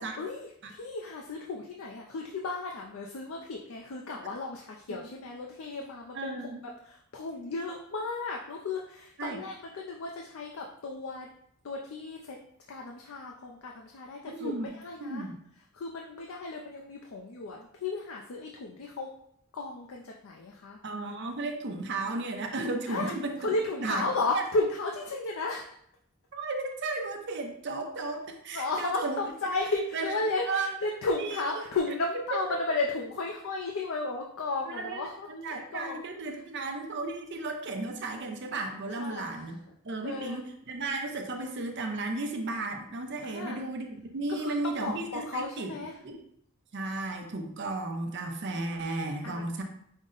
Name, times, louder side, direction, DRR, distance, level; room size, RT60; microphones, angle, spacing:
voice 1, 0.0-6.5 6.8-11.3 11.6-12.4 12.7-15.2 15.7-19.1 19.5-20.8 22.9-25.7 28.5-36.4 38.9-39.5 40.0-40.4 43.2-43.6 44.3-46.0 49.2-49.5, left 3 dB, 70° left, 0 dB, 0.4 m, -34 dB
voice 2, 6.2-6.6 9.2-9.4 14.3-14.7 15.0-15.3 20.8-23.3 23.8-24.0 24.3-24.4 26.3-29.2 29.9-30.1 30.5-30.7 31.2-31.3 32.3-32.4 34.7-35.0 35.3-39.6 39.8-45.7 46.0-46.2 46.7-49.6, right 3 dB, 55° right, 4 dB, 0.6 m, -34 dB
5.3 x 2.1 x 3.7 m, 0.68 s
head